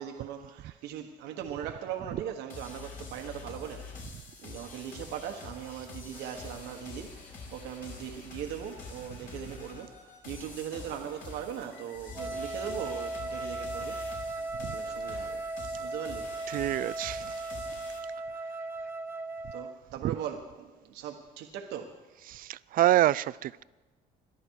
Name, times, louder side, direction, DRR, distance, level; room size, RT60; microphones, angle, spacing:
voice 1, 0.0-3.8 4.4-7.1 7.5-9.9 10.2-14.0 14.7-15.4 15.8-16.3 19.5-21.9, right 9 dB, 90° right, 1.4 m, -39 dB
sound 1, 2.5-18.0, left 3 dB, 55° left, 5.9 m, -46 dB
Wind instrument woodwind instrument, 12.1-19.8, right 2 dB, 15° right, 0.7 m, -37 dB
voice 2, 16.5-17.3 20.0-20.2 22.3-23.6, right 14 dB, 55° right, 0.4 m, -27 dB
22.0 x 13.5 x 4.7 m
cardioid pair, 110°, 17 cm